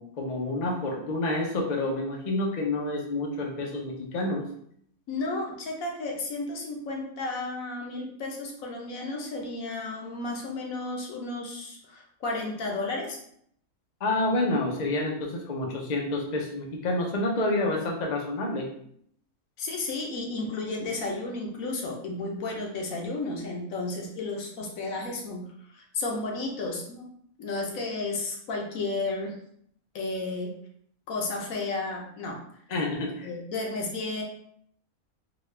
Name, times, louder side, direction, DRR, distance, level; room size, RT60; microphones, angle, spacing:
voice 1, 0.0-4.4 14.0-18.7 32.7-33.3, left 2 dB, 50° left, 0 dB, 0.5 m, -28 dB
voice 2, 5.1-13.2 19.6-25.4 25.7-27.1 27.4-29.4 29.9-30.5 31.1-32.4 33.2-34.2, left 2 dB, 70° left, 0 dB, 1.1 m, -33 dB
4.0 x 2.2 x 3.2 m, 0.67 s
omnidirectional pair, 1.6 m